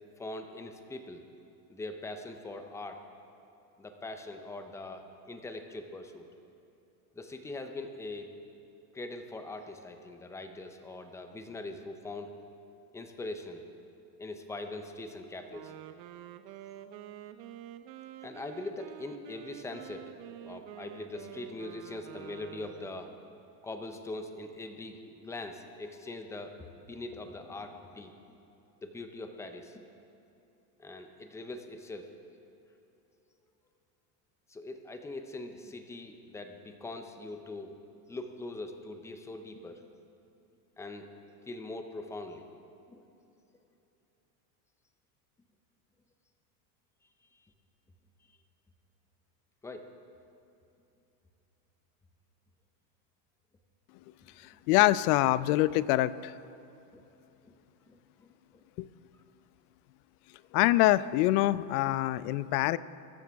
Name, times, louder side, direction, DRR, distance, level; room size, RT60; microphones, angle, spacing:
voice 1, 0.2-1.3 1.7-3.0 3.8-6.3 7.1-8.3 8.9-12.3 12.9-13.6 14.2-15.7 18.2-20.1 20.4-23.1 23.6-26.5 26.9-28.1 28.8-29.8 30.8-32.1 34.5-37.7 38.1-39.9 40.8-41.1 41.5-42.5 42.9-43.0 49.6-49.9 56.9-57.0 57.4-57.5 57.9-58.6, left 2 dB, 5° left, 6 dB, 0.5 m, -42 dB
Wind instrument woodwind instrument, 15.5-23.4, right 12 dB, 85° right, 0.9 m, -48 dB
voice 2, 54.7-56.3 58.8-58.9 60.5-62.8, left 16 dB, 65° left, 18 dB, 0.6 m, -25 dB
23.0 x 12.5 x 3.5 m, 2.9 s
supercardioid pair, 150°, 49 cm